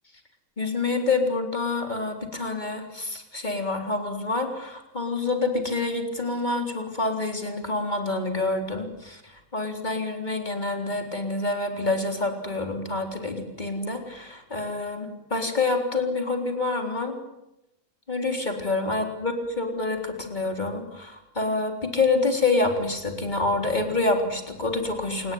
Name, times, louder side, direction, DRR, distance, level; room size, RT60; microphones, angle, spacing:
voice 1, 0.6-17.2 18.1-25.3, left 3 dB, 10° left, 4 dB, 3.3 m, -27 dB
28.5 x 19.5 x 9.5 m, 0.91 s
omnidirectional pair, 4.5 m